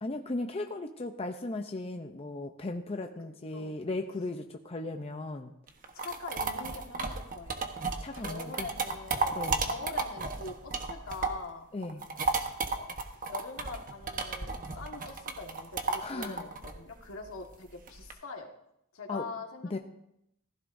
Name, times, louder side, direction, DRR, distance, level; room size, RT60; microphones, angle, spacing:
voice 1, 0.0-5.5 8.0-8.7 9.3-9.6 11.7-12.0 16.0-16.4 19.1-19.3 19.7-19.8, left 2 dB, 30° left, 4 dB, 0.6 m, -36 dB
sound 1, 5.7-11.5 11.8-18.1, right 3 dB, 40° right, 1.1 m, -33 dB
voice 2, 5.9-7.7 8.1-11.7 12.7-12.9 13.3-18.5 18.9-19.7, left 3 dB, 70° left, 2 dB, 1.7 m, -43 dB
15.5 x 14.5 x 2.7 m, 0.78 s
head